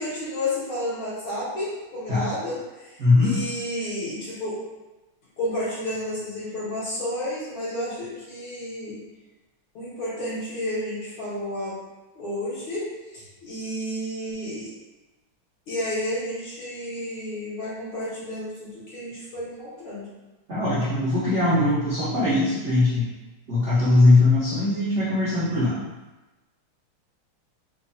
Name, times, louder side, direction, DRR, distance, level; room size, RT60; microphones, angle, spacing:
voice 1, 0.0-4.6 5.4-9.0 9.7-11.8 12.2-12.9 13.1-14.7 15.7-20.1, left 1 dB, 80° left, -8 dB, 2.2 m, -31 dB
voice 2, 3.0-3.4 20.5-23.1 23.5-25.8, left 2 dB, 60° right, -11 dB, 0.7 m, -20 dB
4.3 x 2.3 x 2.5 m, 1.1 s
omnidirectional pair, 2.3 m